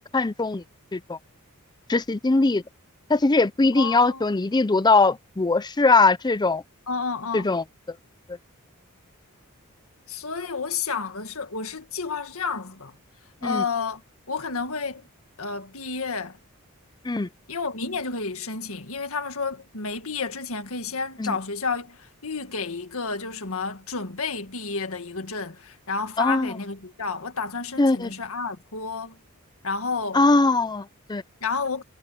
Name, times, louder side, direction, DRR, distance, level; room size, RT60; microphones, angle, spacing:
voice 1, 0.1-0.6 0.9-1.2 1.9-2.6 3.1-6.6 7.3-8.0 13.4-13.6 17.0-17.3 21.2-21.4 26.2-26.5 27.8-28.1 30.1-31.2, left 3 dB, 20° left, 0.5 m, -21 dB
voice 2, 3.8-4.2 6.9-7.5 10.1-13.0 13.4-14.0 14.3-15.0 15.4-16.4 17.5-29.2 29.6-30.2 31.4-31.8, left 4 dB, 70° left, 2.0 m, -31 dB
head